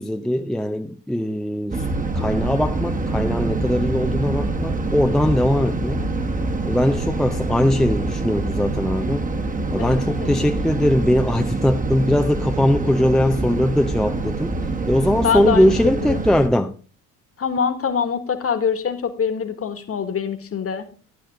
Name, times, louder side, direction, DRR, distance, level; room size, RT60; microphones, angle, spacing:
voice 1, 0.0-1.8 2.1-6.0 6.6-9.3 9.7-14.5 14.9-16.7, left 1 dB, ahead, 0.7 m, -20 dB
sound 1, 1.7-16.5, right 2 dB, 20° right, 1.5 m, -25 dB
voice 2, 9.8-10.4 15.2-15.7 16.0-16.2 17.4-20.9, left 7 dB, 30° left, 1.8 m, -24 dB
11.5 x 9.7 x 3.7 m
figure-of-eight pair, 50°, 44 cm